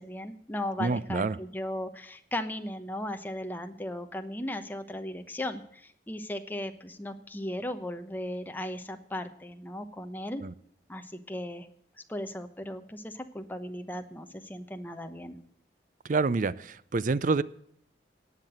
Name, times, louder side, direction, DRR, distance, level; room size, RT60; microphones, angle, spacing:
voice 1, 0.0-10.4 10.9-11.7 12.1-15.4, left 1 dB, 10° left, 7 dB, 0.9 m, -37 dB
voice 2, 0.8-1.4 10.4-10.5 16.0-17.4, right 3 dB, 45° right, 19 dB, 0.5 m, -27 dB
18.0 x 6.0 x 7.9 m, 0.68 s
head